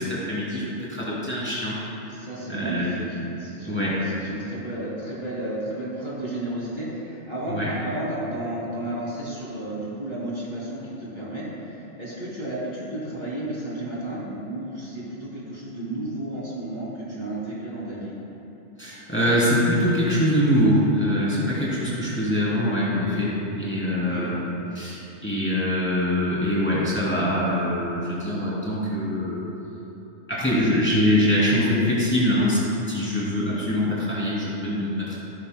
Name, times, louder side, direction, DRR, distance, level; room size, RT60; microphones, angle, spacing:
voice 1, 0.0-1.8 2.5-2.9 3.7-4.0 7.5-7.7 18.8-24.4 24.7-29.4 30.3-32.6 32.9-35.1, equal, 10° left, -8 dB, 2.7 m, -23 dB
voice 2, 2.1-18.1 23.9-24.3, right 1 dB, 35° right, -7 dB, 2.6 m, -32 dB
15.0 x 13.0 x 2.2 m, 3.0 s
omnidirectional pair, 1.3 m